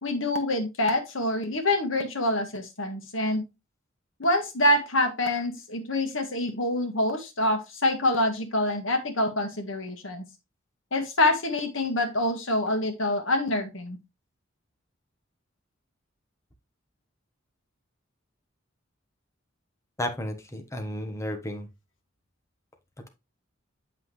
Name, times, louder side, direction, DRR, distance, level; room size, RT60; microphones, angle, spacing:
voice 1, 0.0-3.4 4.2-10.2 10.9-14.0, left 1 dB, 75° left, 5 dB, 1.6 m, -26 dB
voice 2, 20.0-21.7, left 1 dB, 15° left, 5 dB, 1.2 m, -33 dB
7.6 x 5.7 x 3.1 m, 0.25 s
head